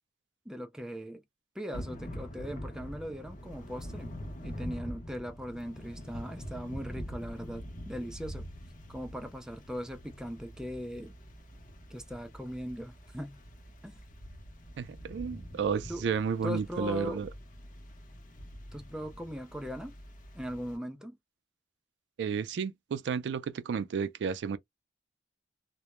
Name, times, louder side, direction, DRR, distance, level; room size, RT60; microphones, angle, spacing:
voice 1, 0.5-1.2 1.6-4.1 4.4-8.5 8.9-11.1 11.9-13.4 13.8-14.0 15.9-16.1 16.4-17.2 18.7-19.9 20.3-21.2, equal, 5° right, 0.4 m, -39 dB
Thunder / Rain, 1.7-20.8, equal, 45° left, 0.6 m, -45 dB
voice 2, 14.8-17.3 22.2-24.6, right 6 dB, 75° right, 0.3 m, -32 dB
2.1 x 2.0 x 2.9 m
head